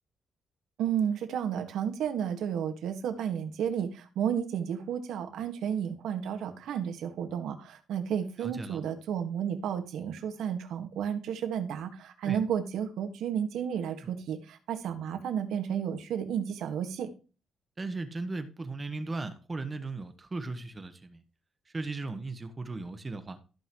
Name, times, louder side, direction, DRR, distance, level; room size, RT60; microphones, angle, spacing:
voice 1, 0.8-17.1, right 8 dB, 80° right, 1.7 m, -32 dB
voice 2, 8.4-8.8 12.2-12.4 14.0-14.1 17.8-21.2 21.7-23.4, right 3 dB, 20° right, 1.2 m, -37 dB
14.5 x 5.6 x 3.1 m
cardioid pair, 160°, 0 cm